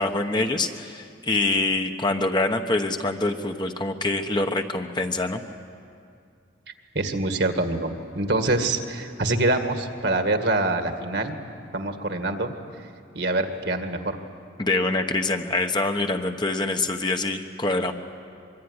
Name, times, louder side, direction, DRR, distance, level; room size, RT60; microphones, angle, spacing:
voice 1, 0.0-5.4 14.6-17.9, left 2 dB, 25° left, 5 dB, 1.2 m, -25 dB
voice 2, 7.0-11.4 11.7-12.5 13.2-14.2, right 2 dB, 60° right, 6 dB, 2.0 m, -25 dB
25.0 x 23.5 x 9.8 m, 2.3 s
head